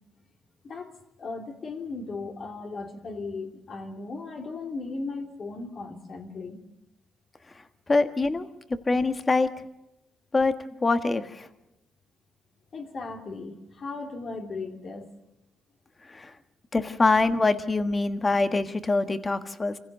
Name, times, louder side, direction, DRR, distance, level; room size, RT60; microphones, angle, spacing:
voice 1, 1.2-6.6 12.7-15.1, left 3 dB, 50° left, 3 dB, 3.1 m, -37 dB
voice 2, 7.9-8.5 8.9-9.5 10.3-10.5 10.8-11.5 16.1-16.3 16.7-19.7, left 3 dB, 25° left, 9 dB, 1.5 m, -24 dB
26.0 x 16.0 x 6.8 m, 0.90 s
cardioid pair, 90°, 0 cm